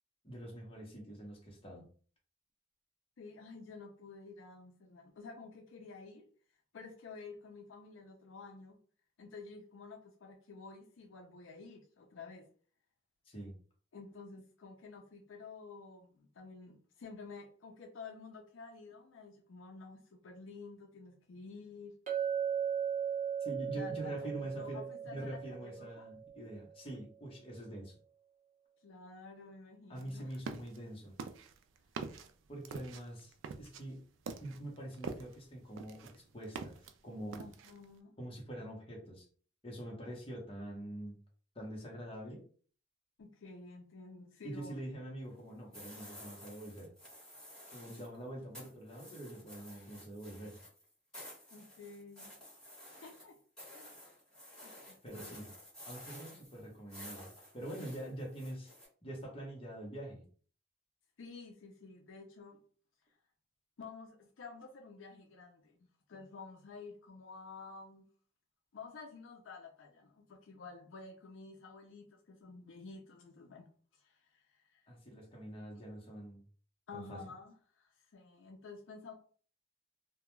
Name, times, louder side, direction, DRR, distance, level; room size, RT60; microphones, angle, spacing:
voice 1, 0.2-1.9 13.2-13.6 23.4-28.0 29.9-31.1 32.5-34.0 34.4-37.5 38.2-39.3 39.6-41.2 41.5-42.4 44.4-46.9 47.7-50.6 55.0-55.5 55.8-58.7 59.0-60.2 74.9-76.4 76.9-77.2, right 1 dB, 30° left, 0.8 m, -45 dB
voice 2, 3.2-6.3 6.7-8.8 9.2-12.5 13.9-21.9 23.7-26.1 28.8-30.4 37.4-38.1 43.2-44.9 51.5-52.3 52.8-53.4 53.7-53.9 54.6-55.4 61.2-62.6 63.8-68.1 68.7-73.7 73.9-74.8 75.7-75.8 76.9-79.1, left 4 dB, 75° left, 0.4 m, -51 dB
Chink clink, 22.1-26.5, right 8 dB, 35° right, 0.7 m, -37 dB
sound 1, 30.0-30.8 31.2-35.4 35.8-36.9 37.3-37.8, right 5 dB, 75° right, 0.3 m, -44 dB
sound 2, 45.7-48.2 48.5-58.9, equal, 5° left, 1.2 m, -53 dB
2.2 x 2.1 x 3.0 m
head